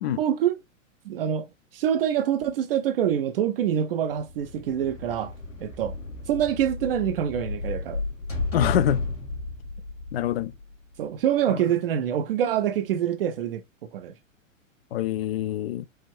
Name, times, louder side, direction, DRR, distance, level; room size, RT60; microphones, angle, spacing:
voice 1, 0.2-0.6 1.0-1.5 1.7-5.3 5.6-5.9 6.3-8.0 11.0-13.6 13.9-14.1, right 10 dB, 45° right, 0.6 m, -25 dB
thin metal sliding door close shut, 4.2-10.9, left 2 dB, 70° left, 2.3 m, -33 dB
voice 2, 8.5-9.0 10.1-10.5 11.5-11.6 14.9-15.9, left 11 dB, 50° left, 0.5 m, -25 dB
4.7 x 2.5 x 3.0 m
figure-of-eight pair, 95°, 39 cm